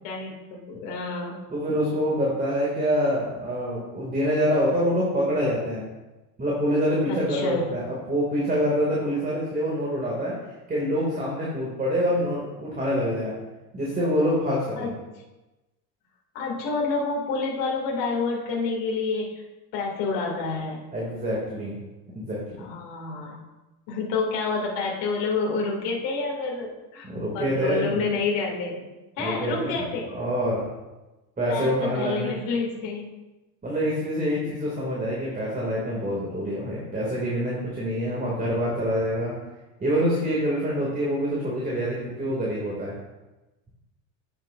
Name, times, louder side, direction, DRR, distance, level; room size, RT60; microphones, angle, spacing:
voice 1, 0.0-1.4 7.1-7.6 14.8-14.9 16.3-19.4 19.7-20.8 22.6-23.4 23.9-28.8 29.2-30.1 31.5-33.1, left 4 dB, 60° left, -1 dB, 2.5 m, -28 dB
voice 2, 1.5-5.8 6.4-10.4 10.7-13.3 13.7-14.9 20.9-21.8 22.2-22.8 27.0-28.1 29.2-29.9 30.1-30.6 31.4-32.4 33.6-39.4 39.8-42.9, equal, 20° right, -5 dB, 2.3 m, -26 dB
9.9 x 6.6 x 2.5 m, 1.1 s
supercardioid pair, 95°, 47 cm